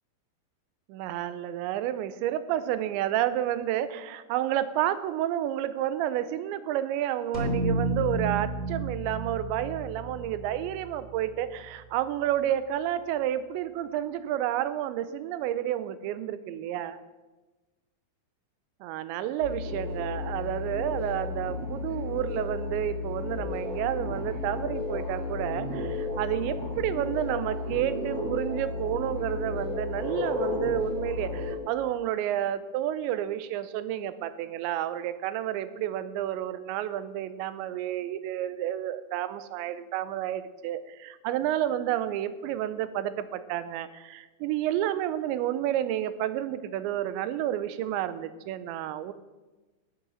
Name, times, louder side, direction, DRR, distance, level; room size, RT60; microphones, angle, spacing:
voice 1, 0.9-17.0 18.8-49.1, right 11 dB, 85° right, 13 dB, 2.9 m, -30 dB
sound 1, 7.3-11.9, right 1 dB, 35° left, 0.6 m, -32 dB
sound 2, 19.4-31.6, left 3 dB, 50° right, 4.1 m, -33 dB
13.0 x 8.8 x 6.4 m, 1.2 s
omnidirectional pair, 5.2 m